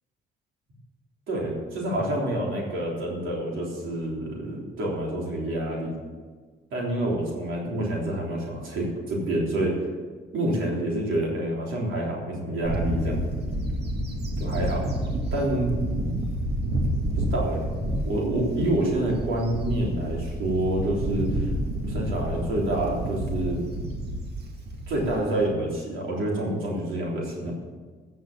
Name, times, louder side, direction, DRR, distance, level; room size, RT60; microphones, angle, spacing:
voice 1, 1.3-5.9 6.7-9.8 10.3-13.2 14.4-14.8 15.3-15.8 17.1-21.5 21.8-23.6 24.9-27.5, right 1 dB, 80° right, -3 dB, 3.6 m, -27 dB
Bird / Wind, 12.6-25.4, right 1 dB, 55° right, 2.1 m, -29 dB
14.0 x 7.0 x 7.4 m, 1.5 s
cardioid pair, 90°, 20 cm